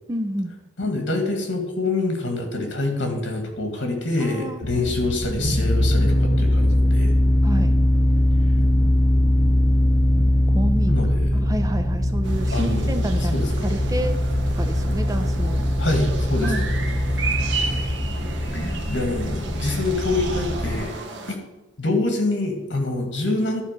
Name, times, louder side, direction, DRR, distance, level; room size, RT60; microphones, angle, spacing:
voice 1, 0.1-0.6 4.2-4.9 7.4-7.8 10.5-11.0 11.3-14.2 14.5-15.6 16.4-16.6, equal, 20° right, 8 dB, 0.5 m, -29 dB
voice 2, 0.8-7.1 10.9-11.3 12.5-13.0 13.3-13.7 15.8-16.7 18.5-20.9 21.3-21.4 21.8-23.6, left 2 dB, 70° left, 3 dB, 2.0 m, -26 dB
sound 1, 4.6-20.8, left 1 dB, 45° left, 1.8 m, -21 dB
sound 2, 12.2-21.4, right 4 dB, 75° right, 1.2 m, -34 dB
11.5 x 4.5 x 6.6 m, 1.1 s
head